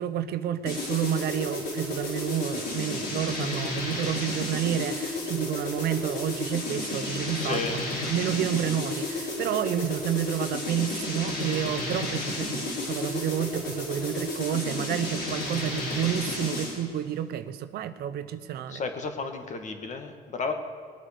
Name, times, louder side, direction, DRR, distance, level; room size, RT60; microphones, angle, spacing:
voice 1, 0.0-7.8 8.1-18.8, right 10 dB, 70° right, 0.8 m, -30 dB
sound 1, 0.7-16.9, left 2 dB, 70° left, 5.0 m, -32 dB
voice 2, 7.4-7.8 18.7-20.5, left 4 dB, 45° left, 1.9 m, -32 dB
20.5 x 9.2 x 6.7 m
cardioid pair, 110°, 17 cm